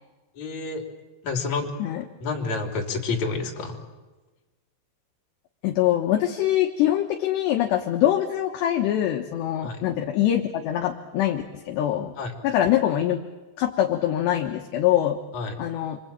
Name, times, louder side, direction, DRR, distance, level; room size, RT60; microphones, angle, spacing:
voice 1, 0.4-0.8 1.2-1.7 2.2-3.8 9.6-9.8 12.2-12.3 15.3-15.6, left 4 dB, 40° left, 1 dB, 3.9 m, -29 dB
voice 2, 5.6-12.1 12.4-13.2 13.6-15.2 15.6-16.0, left 12 dB, 70° left, 2 dB, 3.0 m, -23 dB
28.0 x 24.0 x 8.9 m, 1.2 s
omnidirectional pair, 5.9 m